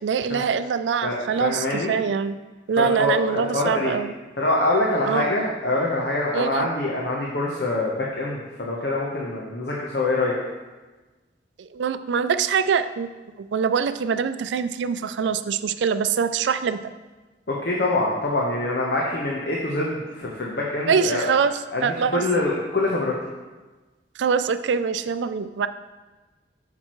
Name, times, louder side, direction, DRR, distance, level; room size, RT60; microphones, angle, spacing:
voice 1, 0.0-2.4 2.7-4.1 5.1-5.4 6.3-6.7 11.6-13.1 13.4-16.8 20.9-22.2 24.2-25.7, right 6 dB, 90° right, 12 dB, 0.4 m, -24 dB
voice 2, 1.0-1.9 2.8-3.9 4.4-10.3 17.5-21.2 21.7-23.1, left 2 dB, 65° left, -3 dB, 0.9 m, -25 dB
8.7 x 5.9 x 3.1 m, 1.2 s
head